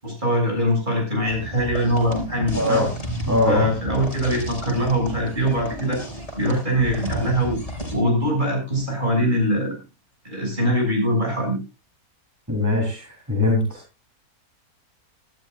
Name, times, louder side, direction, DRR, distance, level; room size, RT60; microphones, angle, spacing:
voice 1, 0.0-2.8 3.4-6.0 6.4-7.6 7.9-9.8 10.2-11.6, equal, 30° right, 1 dB, 7.7 m, -22 dB
sound 1, 1.3-8.0, right 1 dB, 25° left, 5.0 m, -33 dB
voice 2, 2.5-2.9 3.3-3.7 12.5-13.8, left 2 dB, 10° right, -1 dB, 4.0 m, -21 dB
19.0 x 13.0 x 2.6 m, 0.28 s
omnidirectional pair, 1.6 m